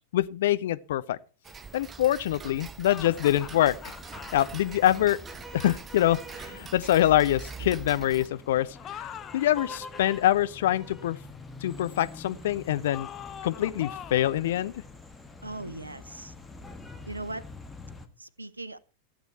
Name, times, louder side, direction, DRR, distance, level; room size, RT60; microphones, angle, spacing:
voice 1, 0.1-1.2 1.7-3.9 4.3-5.2 5.5-8.7 9.3-11.2 11.6-13.1 13.4-14.7, left 13 dB, 55° left, 0.7 m, -25 dB
Tick-tock, 1.4-8.3, right 5 dB, 20° right, 0.7 m, -43 dB
sound 1, 2.8-4.5 8.7-10.1 12.9-14.4, left 9 dB, 30° left, 0.9 m, -42 dB
sound 2, 2.9-18.1, left 2 dB, 10° left, 1.6 m, -46 dB
voice 2, 15.4-16.3 17.1-17.5 18.2-18.8, right 2 dB, 80° right, 0.7 m, -39 dB
15.0 x 8.3 x 4.3 m
figure-of-eight pair, 90°, 0 cm